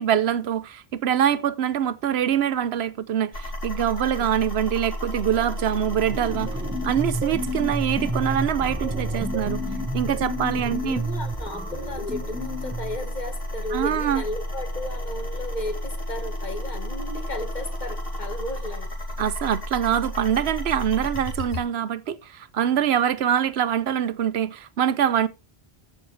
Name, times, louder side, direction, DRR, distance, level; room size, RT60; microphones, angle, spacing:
voice 1, 0.0-6.5 6.8-9.6 9.9-11.0 13.7-14.2 19.2-25.3, right 9 dB, 80° right, 0.9 m, -24 dB
sound 1, 3.3-21.6, equal, 65° left, 3.1 m, -32 dB
sound 2, 5.9-13.0, equal, 10° right, 1.1 m, -31 dB
voice 2, 10.5-18.9, left 1 dB, 45° left, 1.6 m, -35 dB
15.0 x 6.5 x 3.4 m
omnidirectional pair, 1.1 m